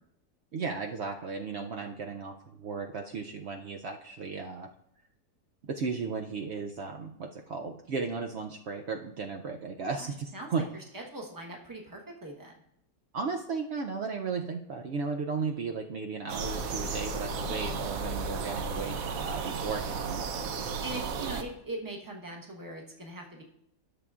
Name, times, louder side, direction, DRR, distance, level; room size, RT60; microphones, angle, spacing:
voice 1, 0.5-4.7 5.6-10.7 13.1-20.4, right 4 dB, 80° right, 3 dB, 0.6 m, -35 dB
voice 2, 10.3-12.6 17.4-17.6 20.2-23.4, right 1 dB, 15° right, 0 dB, 0.9 m, -42 dB
sound 1, 16.3-21.4, right 4 dB, 65° right, 1.0 m, -34 dB
13.0 x 6.9 x 2.4 m, 0.77 s
omnidirectional pair, 1.8 m